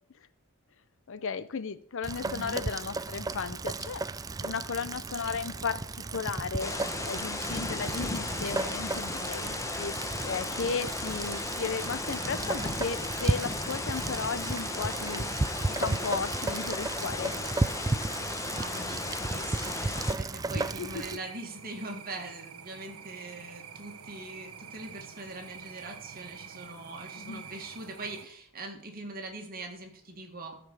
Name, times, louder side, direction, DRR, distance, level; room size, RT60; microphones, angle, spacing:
voice 1, 1.1-4.0 4.4-5.8 6.1-6.7 7.0-9.9 10.3-15.3 15.7-17.3 20.5-21.2 27.2-27.4, left 5 dB, 60° left, 15 dB, 0.6 m, -35 dB
Rain, 2.0-21.2, right 3 dB, 15° right, 0.3 m, -34 dB
voice 2, 2.2-2.6 18.6-30.6, right 2 dB, 40° right, 3 dB, 2.1 m, -42 dB
sound 1, 6.6-20.1, left 2 dB, 15° left, 0.9 m, -35 dB
sound 2, 20.5-28.3, right 7 dB, 70° right, 0.9 m, -47 dB
13.5 x 5.2 x 6.9 m, 0.68 s
head